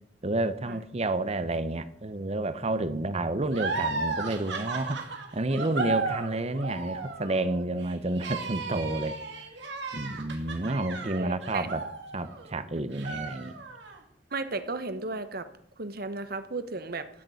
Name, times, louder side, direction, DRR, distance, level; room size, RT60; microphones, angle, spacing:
voice 1, 0.2-5.0 5.3-9.2 9.9-11.8 12.1-13.5, right 2 dB, 35° right, 13 dB, 0.9 m, -30 dB
sound 1, 3.5-12.6 12.9-14.0, right 3 dB, 90° right, 2.6 m, -35 dB
voice 2, 11.1-11.7 14.3-15.5 15.8-17.1, right 3 dB, 60° right, 11 dB, 1.2 m, -34 dB
14.5 x 6.7 x 9.2 m, 0.73 s
head